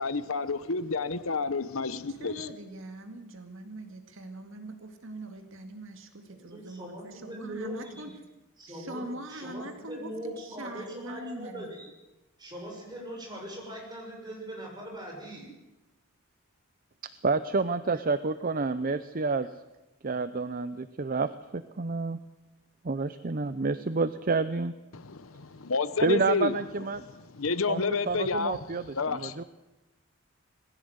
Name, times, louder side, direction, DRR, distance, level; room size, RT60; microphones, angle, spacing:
voice 1, 0.0-2.5 24.9-26.5 27.3-28.6 28.9-29.4, left 4 dB, 65° left, 14 dB, 0.9 m, -30 dB
voice 2, 2.1-8.1 8.7-11.7, right 1 dB, 60° right, 6 dB, 2.1 m, -42 dB
voice 3, 6.3-8.0 8.6-9.0 9.3-11.9 12.4-15.5, right 1 dB, 20° right, 0 dB, 6.6 m, -41 dB
voice 4, 17.2-19.5 20.0-22.2 22.8-24.7 26.0-27.0 27.7-29.4, right 4 dB, 40° right, 12 dB, 0.6 m, -29 dB
20.5 x 16.0 x 8.0 m, 1.0 s
head